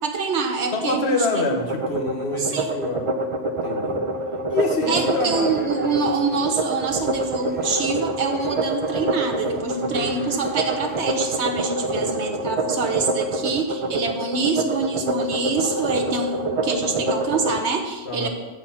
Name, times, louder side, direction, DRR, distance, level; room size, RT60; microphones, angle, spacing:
voice 1, 0.0-1.6 2.4-2.7 4.9-18.3, right 4 dB, 65° right, 5 dB, 1.3 m, -25 dB
voice 2, 0.7-3.1 3.6-4.0 4.5-5.5 9.9-10.3 12.0-12.4 18.1-18.3, left 2 dB, 60° left, 2 dB, 1.5 m, -26 dB
sound 1, 1.6-17.6, right 2 dB, 35° right, 0.5 m, -26 dB
sound 2, 4.7-11.4, right 1 dB, 10° right, 0.9 m, -44 dB
13.0 x 4.4 x 5.7 m, 1.2 s
omnidirectional pair, 1.2 m